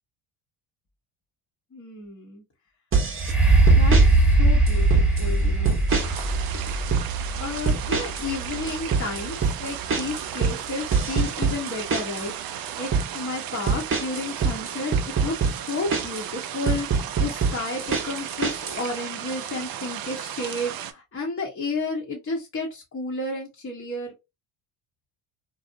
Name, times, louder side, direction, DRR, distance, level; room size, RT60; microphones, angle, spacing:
voice 1, 1.7-2.4 3.8-5.8 7.4-12.3 12.8-14.9 15.2-24.1, left 3 dB, 25° left, -2 dB, 0.7 m, -32 dB
sound 1, 2.9-3.3 3.7-4.1 4.7-5.3 5.6-6.3 6.5-7.1 7.7-8.3 8.5-12.3 12.7-13.1 13.7-16.3 16.7-18.8, right 5 dB, 25° right, 0.8 m, -24 dB
sound 2, 3.1-10.9 11.5-11.6, right 2 dB, ahead, 1.2 m, -21 dB
sound 3, 5.9-20.9, right 10 dB, 50° right, 0.4 m, -35 dB
2.5 x 2.0 x 2.4 m, 0.23 s
supercardioid pair, 70°, 49 cm